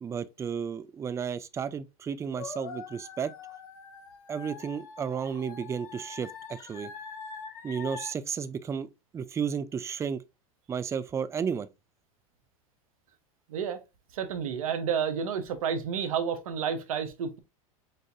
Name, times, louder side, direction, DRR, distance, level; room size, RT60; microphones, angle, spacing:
voice 1, 0.0-3.3 4.3-6.9 7.6-8.9 9.1-10.2 10.7-11.7, right 7 dB, 15° right, 0.4 m, -33 dB
sound 1, 2.4-8.1, left 5 dB, 80° left, 1.4 m, -43 dB
voice 2, 14.1-17.4, right 7 dB, 75° right, 0.9 m, -30 dB
6.5 x 2.6 x 2.4 m
hypercardioid pair, 100°, 18 cm